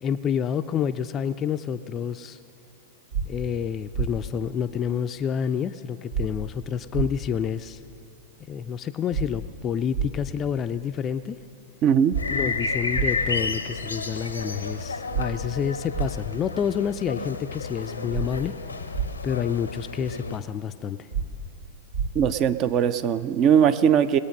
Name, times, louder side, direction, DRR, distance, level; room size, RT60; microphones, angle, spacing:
voice 1, 0.0-2.4 3.3-7.8 8.5-11.4 12.3-18.9 19.2-21.1, left 8 dB, 30° left, 9 dB, 0.4 m, -28 dB
sound 1, 3.1-3.3 3.9-4.1 6.1-6.3 6.9-7.1 9.1-9.3 9.9-10.1 12.1-12.2 12.9-13.1 15.1-15.3 15.9-16.1 18.1-18.3 18.9-19.1 21.1-21.3 21.9-22.1, right 6 dB, 70° right, 1.3 m, -26 dB
voice 2, 11.8-12.2 22.1-24.2, right 8 dB, 40° right, 13 dB, 0.5 m, -20 dB
sound 2, 12.2-20.4, left 4 dB, 90° left, 0.7 m, -31 dB
20.5 x 8.4 x 5.3 m, 2.5 s
figure-of-eight pair, 100°, 0 cm